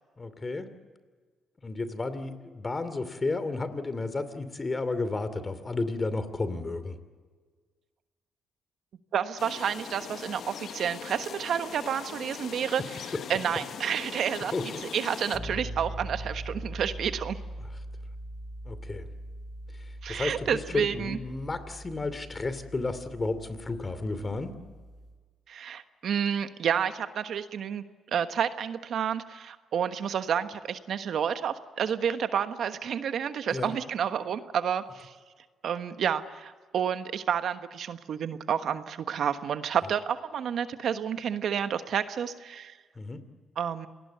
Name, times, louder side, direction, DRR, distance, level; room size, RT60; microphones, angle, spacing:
voice 1, 0.2-0.7 1.6-7.0 14.5-14.6 18.7-19.1 20.1-20.5 20.7-24.5 33.5-33.7 43.0-43.2, left 3 dB, 25° left, 12 dB, 2.7 m, -32 dB
voice 2, 9.1-14.5 14.9-17.4 20.0-21.2 25.5-27.8 28.1-35.1 35.6-42.8 43.6-43.9, right 8 dB, 65° right, 9 dB, 1.3 m, -30 dB
sound 1, 9.4-15.4, left 8 dB, 60° left, 1.0 m, -41 dB
sound 2, 15.3-25.1, right 1 dB, 45° left, 7.2 m, -41 dB
27.5 x 19.5 x 8.1 m, 1.5 s
cardioid pair, 90°, 0 cm